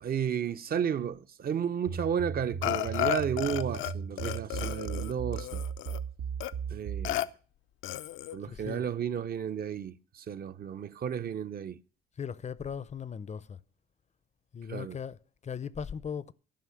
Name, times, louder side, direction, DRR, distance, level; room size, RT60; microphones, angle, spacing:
voice 1, 0.0-5.6 6.7-7.3 8.3-11.8 14.7-15.0, right 8 dB, 50° right, 0.7 m, -33 dB
sound 1, 1.9-7.2, right 6 dB, 85° right, 1.2 m, -37 dB
Burping eructation, 2.6-3.9 4.2-6.0 6.4-6.5 7.0-7.3 7.8-8.4, left 14 dB, 85° left, 0.6 m, -33 dB
voice 2, 8.4-8.9 12.2-13.6 14.5-16.3, left 7 dB, 35° left, 0.5 m, -38 dB
11.5 x 5.7 x 8.6 m
cardioid pair, 90°, 20 cm